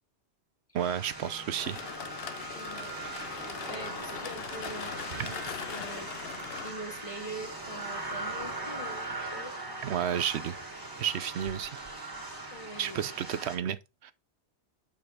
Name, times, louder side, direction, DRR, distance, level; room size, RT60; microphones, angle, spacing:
voice 1, 0.7-1.8 9.8-10.5 11.0-11.7 12.8-14.1, right 9 dB, 75° right, 0.9 m, -31 dB
sound 1, 0.8-13.6, right 2 dB, 20° right, 2.2 m, -40 dB
sound 2, 1.6-6.7, left 8 dB, 65° left, 0.9 m, -41 dB
voice 2, 2.5-3.0 3.7-6.1 6.6-9.5 12.5-13.1, right 1 dB, 30° left, 1.3 m, -44 dB
6.9 x 5.2 x 3.9 m
omnidirectional pair, 1.1 m